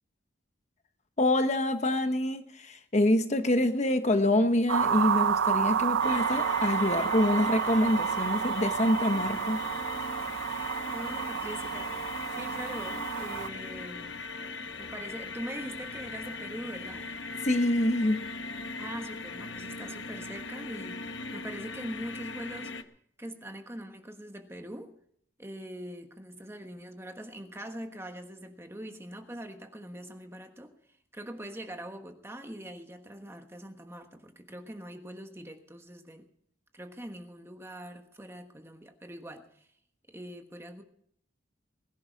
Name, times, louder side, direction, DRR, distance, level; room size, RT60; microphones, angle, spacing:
voice 1, 1.2-9.6 17.4-18.3, left 1 dB, 35° left, 1.0 m, -26 dB
sound 1, 4.7-13.5, right 7 dB, 80° right, 0.5 m, -30 dB
sound 2, 6.0-22.8, left 3 dB, 75° left, 1.1 m, -39 dB
voice 2, 10.5-12.0 12.3-14.2 14.8-17.1 18.8-22.8 23.2-24.9 25.4-30.7 31.1-36.3 36.7-39.7 40.1-40.8, right 1 dB, 15° right, 1.3 m, -43 dB
21.0 x 11.0 x 4.6 m
head